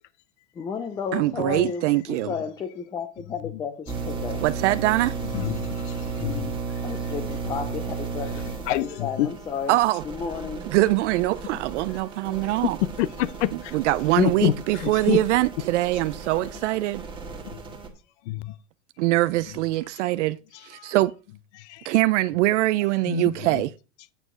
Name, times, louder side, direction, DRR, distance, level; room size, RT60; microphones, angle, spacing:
voice 1, 0.6-4.5 6.8-8.4 8.7-10.7, left 6 dB, 10° left, 0.4 m, -33 dB
voice 2, 1.1-2.3 4.4-5.1 9.7-10.0 10.7-12.8 13.7-17.0 19.0-20.4 20.7-21.1 21.9-23.7, right 17 dB, 60° right, 0.5 m, -23 dB
sound 1, 3.9-17.9, right 5 dB, 10° right, 1.6 m, -34 dB
voice 3, 5.3-6.6 8.7-9.3 12.3-12.5 12.8-13.5 14.2-15.2 18.3-18.5 21.7-21.8 23.0-23.6, left 14 dB, 55° left, 0.7 m, -27 dB
9.0 x 7.0 x 3.7 m
supercardioid pair, 140°, 41 cm